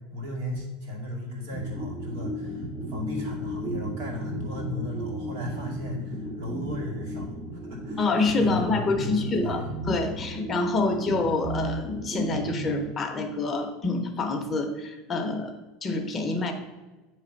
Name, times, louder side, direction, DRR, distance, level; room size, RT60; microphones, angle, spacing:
voice 1, 0.1-7.3 7.6-9.7, left 2 dB, 75° right, -1 dB, 2.2 m, -36 dB
sound 1, 1.5-13.4, right 1 dB, 15° right, 0.6 m, -34 dB
voice 2, 8.0-15.5 15.8-16.5, left 3 dB, 20° left, 4 dB, 0.6 m, -27 dB
8.4 x 3.2 x 5.1 m, 1.2 s
supercardioid pair, 165°, 0 cm